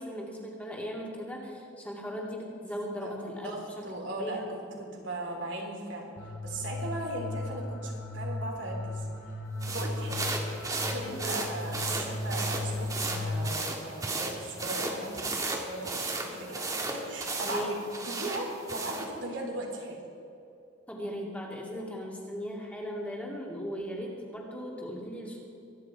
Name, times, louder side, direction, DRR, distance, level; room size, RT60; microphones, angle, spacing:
voice 1, 0.0-3.5 4.2-4.5 11.1-11.4 17.4-17.8 20.9-25.4, equal, 5° left, -2 dB, 2.4 m, -37 dB
voice 2, 3.0-9.1 9.7-10.3 10.8-15.9 16.2-17.6 17.9-20.0, right 1 dB, 75° right, -1 dB, 3.6 m, -38 dB
sound 1, 6.2-13.6, left 2 dB, 90° left, 2.2 m, -36 dB
sound 2, 9.6-19.1, right 2 dB, 20° right, 1.6 m, -35 dB
24.0 x 9.9 x 4.8 m, 2.7 s
head